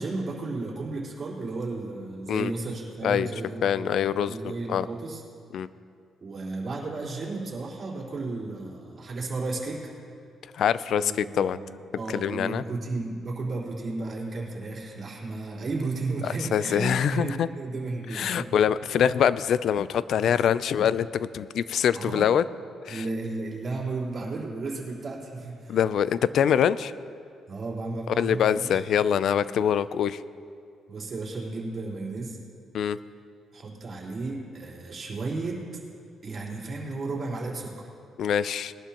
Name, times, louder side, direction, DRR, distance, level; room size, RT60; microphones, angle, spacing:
voice 1, 0.0-5.2 6.2-9.9 11.0-18.5 21.9-22.3 22.9-25.8 27.5-28.8 29.2-29.6 30.9-32.4 33.5-35.6 36.2-37.9, right 3 dB, 40° right, -5 dB, 3.9 m, -34 dB
voice 2, 3.6-4.3 4.7-4.9 5.5-5.7 10.5-11.6 12.1-12.6 16.2-17.5 18.1-22.5 22.9-23.0 25.7-26.9 28.2-30.2 32.7-33.0 38.2-38.7, left 8 dB, 70° left, 16 dB, 0.4 m, -24 dB
20.5 x 11.5 x 3.0 m, 2.3 s
cardioid pair, 90°, 0 cm